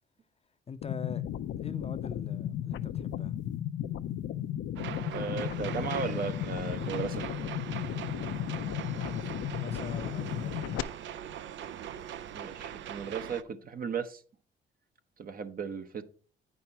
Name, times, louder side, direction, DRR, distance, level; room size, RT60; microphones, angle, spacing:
voice 1, 0.7-3.4 8.9-11.0, left 5 dB, 30° left, 0.6 m, -43 dB
sound 1, 0.8-10.8, left 11 dB, 75° left, 0.6 m, -35 dB
sound 2, 4.8-13.4, right 10 dB, 70° right, 0.6 m, -41 dB
voice 2, 5.1-7.3 12.3-14.2 15.2-16.0, right 6 dB, 45° right, 1.0 m, -36 dB
8.9 x 6.0 x 4.3 m
cardioid pair, 90°, 20 cm